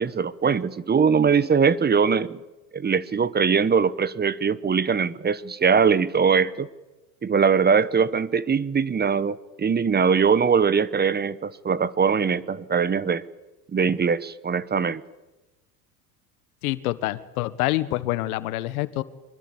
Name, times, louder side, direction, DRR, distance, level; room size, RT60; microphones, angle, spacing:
voice 1, 0.0-2.4 2.7-6.7 7.2-13.2 13.7-15.0, right 6 dB, 20° right, 18 dB, 1.1 m, -21 dB
voice 2, 16.6-19.0, left 17 dB, 80° left, 15 dB, 1.5 m, -26 dB
25.5 x 21.5 x 8.6 m, 1.1 s
supercardioid pair, 90°, 43 cm